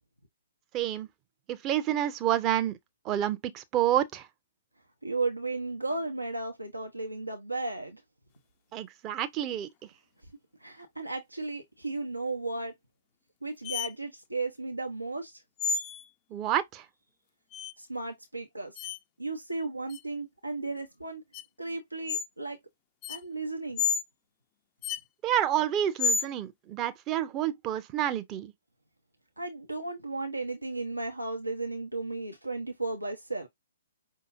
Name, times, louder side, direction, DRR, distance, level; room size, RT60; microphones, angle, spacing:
voice 1, 0.7-1.1 1.5-2.8 3.0-4.3 8.7-9.7 16.3-16.9 25.2-28.5, right 11 dB, 25° right, 0.6 m, -29 dB
voice 2, 5.0-8.0 10.6-12.7 13.4-15.4 17.8-18.8 19.2-21.2 21.6-22.6 23.1-23.8 29.4-33.5, right 3 dB, 85° right, 0.9 m, -34 dB
sound 1, 13.6-13.9 15.6-16.1 17.5-17.7 18.8-19.0 19.9-20.0 21.3-21.4 22.1-22.3 23.0-23.2 23.8-24.0 24.8-25.0 26.0-26.3, left 5 dB, 25° left, 0.4 m, -29 dB
5.4 x 2.8 x 2.6 m
figure-of-eight pair, 125°, 0 cm